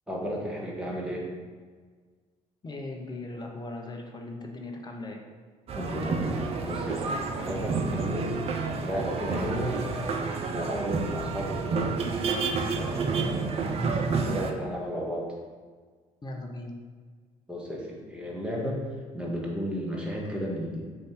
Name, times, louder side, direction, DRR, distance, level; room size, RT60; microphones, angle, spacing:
voice 1, 0.1-1.3 5.7-8.3 8.8-11.9 12.7-14.0 14.2-15.3 17.5-18.8 19.1-20.9, equal, 5° right, -3 dB, 1.1 m, -34 dB
voice 2, 2.6-5.2 16.2-16.7, left 2 dB, 20° left, 2 dB, 0.7 m, -38 dB
sound 1, 5.7-14.5, right 4 dB, 30° right, 0.5 m, -29 dB
4.3 x 2.6 x 3.7 m, 1.5 s
figure-of-eight pair, 55°, 19 cm